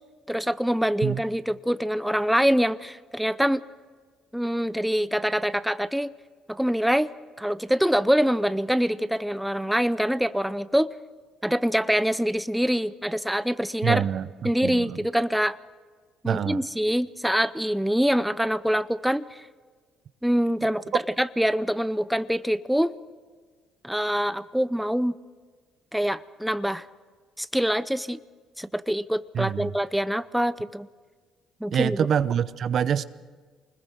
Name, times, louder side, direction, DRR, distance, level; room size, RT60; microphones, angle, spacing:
voice 1, 0.3-3.6 4.3-6.1 6.5-7.1 7.4-10.9 11.4-14.0 14.4-15.6 16.2-19.5 20.2-22.9 23.8-25.1 25.9-26.9 27.4-28.2 28.6-30.9 31.6-32.1, equal, ahead, 15 dB, 0.6 m, -25 dB
voice 2, 13.8-15.0 16.2-16.6 29.3-29.7 31.7-33.0, right 8 dB, 60° right, 15 dB, 0.7 m, -26 dB
25.0 x 20.5 x 6.4 m, 1.4 s
supercardioid pair, 75°, 0 cm